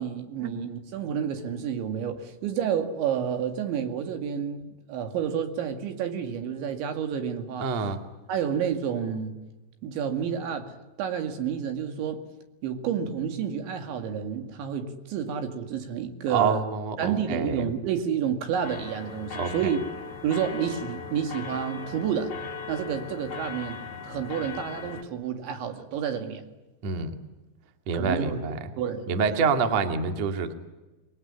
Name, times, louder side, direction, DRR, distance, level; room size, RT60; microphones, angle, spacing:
voice 1, 0.0-7.7 8.3-9.4 9.8-12.2 12.6-16.7 17.0-19.8 20.2-22.4 22.7-26.4 27.9-28.4 28.8-29.3, right 8 dB, 70° right, 4.4 m, -30 dB
voice 2, 7.6-8.0 16.3-17.6 19.4-19.7 26.8-27.1 27.9-28.6 29.1-30.5, right 5 dB, 45° right, 2.5 m, -27 dB
sound 1, 18.6-25.0, left 5 dB, 65° left, 1.5 m, -38 dB
27.0 x 21.5 x 9.8 m
omnidirectional pair, 5.5 m